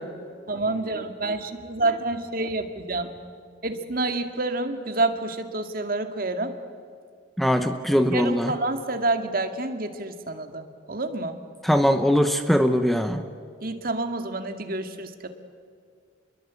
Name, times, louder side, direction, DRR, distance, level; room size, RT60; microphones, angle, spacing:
voice 1, 0.5-3.1 3.6-6.5 8.1-11.4 13.6-15.3, right 2 dB, 50° right, 7 dB, 2.1 m, -28 dB
voice 2, 7.4-8.5 11.6-13.2, equal, ahead, 8 dB, 0.9 m, -21 dB
29.5 x 22.5 x 8.3 m, 2.1 s
head